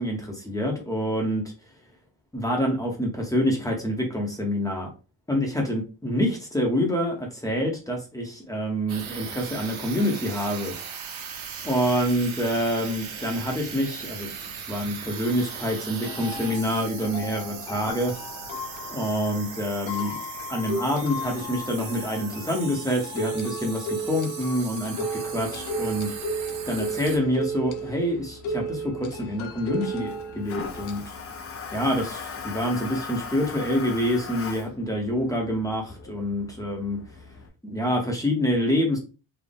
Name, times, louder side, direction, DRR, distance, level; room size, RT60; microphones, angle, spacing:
voice 1, 0.0-1.5 2.3-4.9 5.3-10.8 11.6-18.1 18.9-20.2 20.5-26.1 26.7-31.2 31.7-37.0 37.6-39.0, equal, 5° left, 0 dB, 0.7 m, -27 dB
sound 1, 8.9-27.2, right 7 dB, 80° right, 0.9 m, -38 dB
sound 2, 16.0-31.1, right 1 dB, 75° left, 0.7 m, -34 dB
Toilet flush, 25.2-37.5, left 5 dB, 30° left, 0.4 m, -41 dB
4.0 x 2.1 x 3.4 m, 0.32 s
wide cardioid pair, 180°, 47 cm